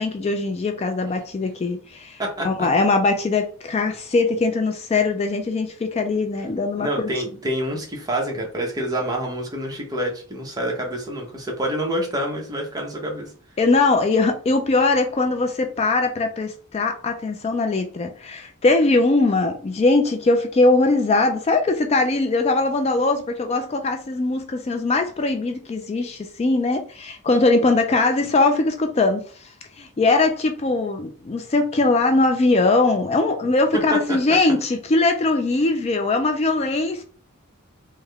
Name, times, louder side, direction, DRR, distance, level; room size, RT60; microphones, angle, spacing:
voice 1, 0.0-6.9 13.6-29.5 29.8-37.0, left 3 dB, 30° left, 0.3 m, -21 dB
voice 2, 2.2-2.7 6.8-13.3 34.1-34.2, right 1 dB, 15° right, 0.8 m, -27 dB
3.5 x 2.1 x 3.3 m
head